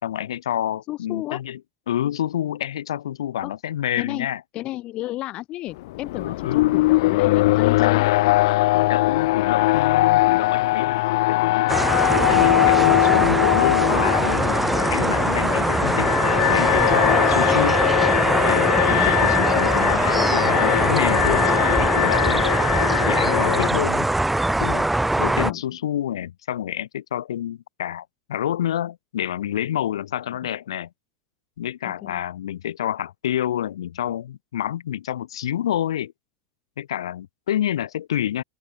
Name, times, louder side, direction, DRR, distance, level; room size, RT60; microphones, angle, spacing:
voice 1, 0.0-1.6 1.9-4.4 6.1-6.8 7.8-8.0 8.7-11.7 12.3-16.1 16.5-17.8 18.4-22.4 23.1-24.1 24.6-24.9 25.2-30.9 31.6-36.1 36.8-38.4, left 11 dB, 90° left, 2.0 m, -28 dB
voice 2, 0.9-1.4 3.4-3.5 4.0-4.3 4.5-8.1 18.9-19.3 23.4-23.7 25.4-25.6 31.8-32.2, left 16 dB, 40° left, 1.4 m, -33 dB
Alarm, 5.8-23.7, left 19 dB, 70° left, 0.7 m, -21 dB
sound 1, 7.9-8.0 9.0-9.3 9.5-9.6 10.1-10.3 11.3-17.0, right 17 dB, 70° right, 1.6 m, -37 dB
sound 2, 11.7-25.5, right 2 dB, 5° right, 0.4 m, -21 dB
open air
supercardioid pair, 125°, 3 cm